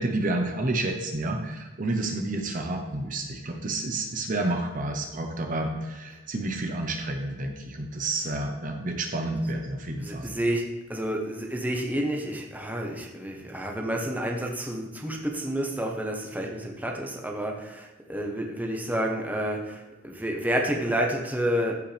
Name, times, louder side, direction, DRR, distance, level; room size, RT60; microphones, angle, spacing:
voice 1, 0.0-10.3, right 2 dB, 40° right, 3 dB, 0.9 m, -30 dB
voice 2, 10.0-10.6 10.9-21.7, equal, 10° right, 0 dB, 1.1 m, -29 dB
14.5 x 5.4 x 3.4 m, 1.1 s
head